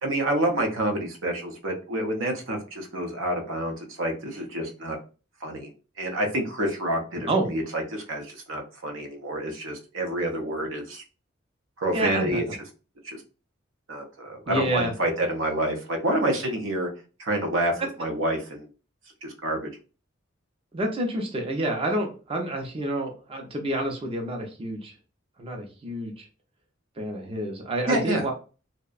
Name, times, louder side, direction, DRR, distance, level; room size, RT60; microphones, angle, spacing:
voice 1, 0.0-5.0 5.4-5.7 6.0-11.0 11.8-12.4 13.0-13.2 13.9-16.9 17.2-18.7 19.2-19.7 27.9-28.2, right 1 dB, 85° right, 3 dB, 0.6 m, -28 dB
voice 2, 11.9-12.6 14.5-14.9 17.8-17.9 20.7-24.9 25.4-26.3 27.0-28.3, right 1 dB, 30° right, 2 dB, 0.4 m, -28 dB
2.6 x 2.1 x 2.3 m, 0.34 s
head